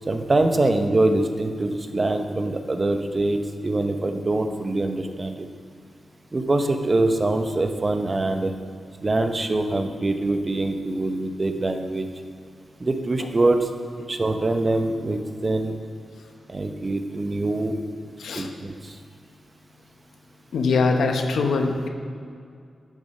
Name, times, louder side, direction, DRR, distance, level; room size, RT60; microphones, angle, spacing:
voice 1, 0.1-5.5 6.3-8.5 9.0-12.1 12.8-13.7 14.1-15.7 16.5-17.8 18.3-18.9, right 2 dB, 35° right, 6 dB, 0.8 m, -24 dB
voice 2, 20.5-21.9, left 4 dB, 90° left, 4 dB, 1.0 m, -22 dB
10.5 x 7.0 x 5.5 m, 2.3 s
cardioid pair, 75°, 0 cm